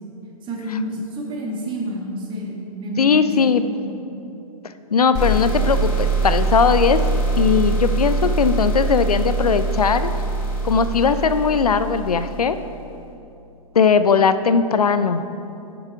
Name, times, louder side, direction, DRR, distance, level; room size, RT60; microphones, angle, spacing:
voice 1, 0.4-4.0, equal, 25° right, -2 dB, 1.7 m, -29 dB
voice 2, 3.0-3.7 4.9-7.0 7.4-10.1 10.6-12.6 13.7-15.2, left 5 dB, 85° left, 12 dB, 0.4 m, -18 dB
sound 1, 5.1-12.7, right 3 dB, 35° left, 1.4 m, -23 dB
10.0 x 5.9 x 3.5 m, 2.8 s
figure-of-eight pair, 110°, 19 cm